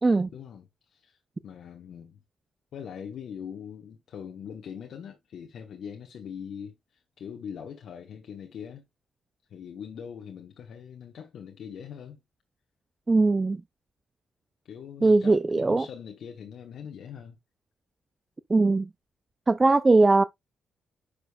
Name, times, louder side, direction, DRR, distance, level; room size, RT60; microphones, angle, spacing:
voice 1, 0.3-1.2 1.4-2.2 2.7-8.8 9.5-12.2 14.6-17.4, left 7 dB, 70° left, 1.0 m, -42 dB
voice 2, 13.1-13.6 15.0-15.9 18.5-18.9 19.5-20.2, right 3 dB, 25° right, 0.4 m, -20 dB
9.6 x 5.0 x 2.3 m
cardioid pair, 75°, 0 cm